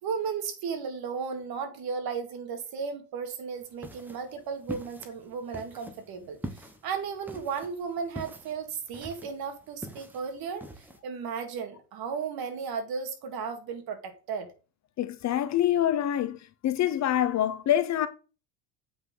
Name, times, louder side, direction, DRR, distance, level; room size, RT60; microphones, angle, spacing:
voice 1, 0.0-14.5, right 6 dB, 55° right, 2.3 m, -35 dB
sound 1, 3.6-11.0, right 1 dB, 5° right, 1.1 m, -44 dB
voice 2, 15.0-16.4 16.6-18.1, left 11 dB, 40° left, 0.7 m, -25 dB
7.8 x 5.8 x 3.8 m
cardioid pair, 140°, 45 cm